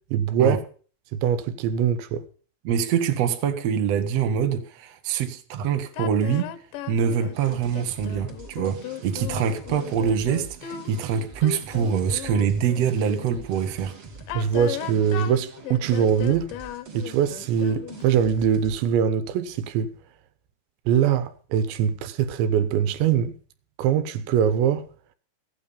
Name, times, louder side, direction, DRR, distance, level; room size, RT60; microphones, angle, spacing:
voice 1, 0.1-0.6 1.1-2.2 14.3-16.5 16.9-19.9 20.9-23.3 23.8-24.9, right 8 dB, 85° right, 3.3 m, -22 dB
voice 2, 2.6-6.5 6.9-13.9, right 7 dB, 65° right, 1.7 m, -24 dB
sound 1, 5.9-13.5 14.2-18.2, left 12 dB, 80° left, 3.2 m, -36 dB
sound 2, 7.3-18.8, right 5 dB, 45° right, 1.9 m, -44 dB
15.0 x 9.3 x 6.9 m
omnidirectional pair, 5.2 m